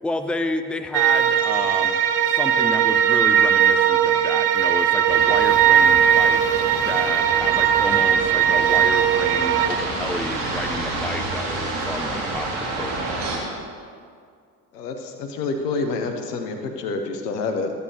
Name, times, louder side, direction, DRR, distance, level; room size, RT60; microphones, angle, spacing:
voice 1, 0.0-2.0 2.2-6.4 6.8-13.1, left 2 dB, ahead, 8 dB, 0.6 m, -31 dB
sound 1, 0.9-9.7, right 9 dB, 85° right, 0.6 m, -18 dB
sound 2, 5.1-13.4, right 2 dB, 60° right, 2.2 m, -29 dB
voice 2, 14.7-17.7, left 3 dB, 85° left, 5 dB, 0.9 m, -27 dB
14.0 x 9.7 x 2.8 m, 2.2 s
hypercardioid pair, 50°, 46 cm